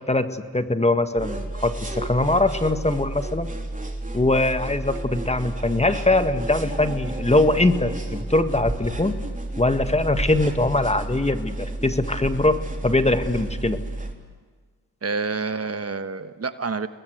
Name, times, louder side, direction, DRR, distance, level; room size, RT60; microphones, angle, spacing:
voice 1, 0.0-3.5 4.1-9.1 9.6-12.6 12.8-13.8, left 2 dB, 15° left, 9 dB, 1.7 m, -22 dB
sound 1, 1.2-14.1, right 2 dB, 20° right, 3.6 m, -31 dB
voice 2, 15.0-16.9, right 4 dB, 40° right, 10 dB, 1.3 m, -28 dB
30.0 x 20.5 x 8.1 m, 1.5 s
supercardioid pair, 55°, 39 cm